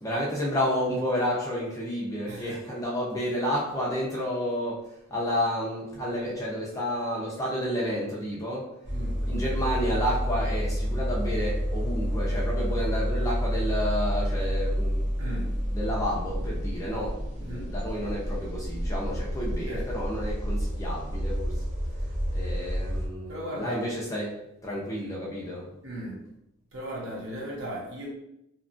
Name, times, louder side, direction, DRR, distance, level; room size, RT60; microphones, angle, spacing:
voice 1, 0.0-4.8 5.1-8.7 9.2-15.1 15.7-21.6 22.3-24.3 24.6-25.7, equal, 15° left, -5 dB, 0.5 m, -30 dB
sound 1, 8.8-23.1, equal, 35° right, 0.6 m, -29 dB
voice 2, 15.2-15.5 17.4-17.6 19.7-19.8 23.3-23.8 25.8-26.1 26.7-28.1, right 1 dB, 70° right, -4 dB, 1.0 m, -36 dB
2.8 x 2.4 x 2.5 m, 0.83 s
head